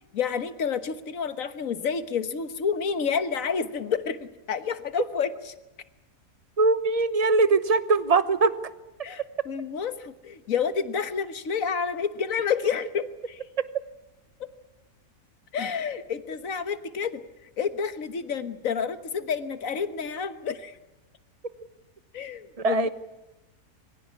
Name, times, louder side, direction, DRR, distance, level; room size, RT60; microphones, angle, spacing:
voice 1, 0.1-5.3 9.0-13.4 14.4-14.5 15.5-17.2 17.6-20.8 22.1-22.9, left 6 dB, 60° left, 11 dB, 1.6 m, -29 dB
voice 2, 6.6-8.5 22.6-22.9, right 3 dB, 30° right, 13 dB, 0.9 m, -21 dB
24.0 x 16.5 x 9.8 m, 1.0 s
omnidirectional pair, 1.7 m